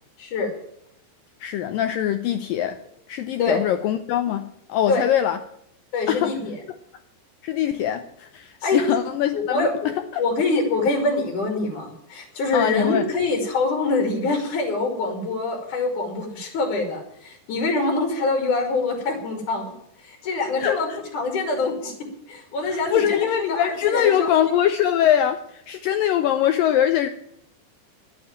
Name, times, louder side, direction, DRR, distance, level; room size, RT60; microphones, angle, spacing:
voice 1, 0.2-0.5 3.4-3.6 4.9-5.0 5.9-6.6 8.6-8.8 9.3-9.7 10.2-19.7 20.0-20.9 21.1-21.9 22.3-24.3, left 3 dB, 50° left, 3.8 m, -24 dB
voice 2, 1.4-2.8 3.1-5.4 6.1-6.4 7.4-10.2 12.5-13.1 20.6-21.0 22.6-27.1, left 10 dB, 80° left, 2.0 m, -23 dB
12.0 x 9.2 x 8.7 m
omnidirectional pair, 4.8 m